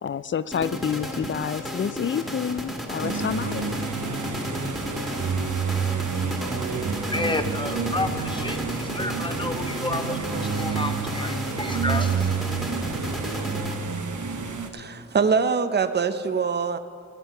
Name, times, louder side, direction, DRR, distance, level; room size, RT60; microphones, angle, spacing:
voice 1, 0.0-3.7, left 7 dB, 40° left, 16 dB, 0.4 m, -28 dB
sound 1, 0.5-14.1, equal, ahead, 1.7 m, -33 dB
sound 2, 3.0-14.7, right 5 dB, 70° right, 1.0 m, -29 dB
voice 2, 7.0-12.4, left 2 dB, 15° left, 8 dB, 0.8 m, -31 dB
voice 3, 14.7-16.8, right 5 dB, 35° right, 11 dB, 0.6 m, -23 dB
16.0 x 7.8 x 5.5 m, 2.3 s
wide cardioid pair, 70°, 31 cm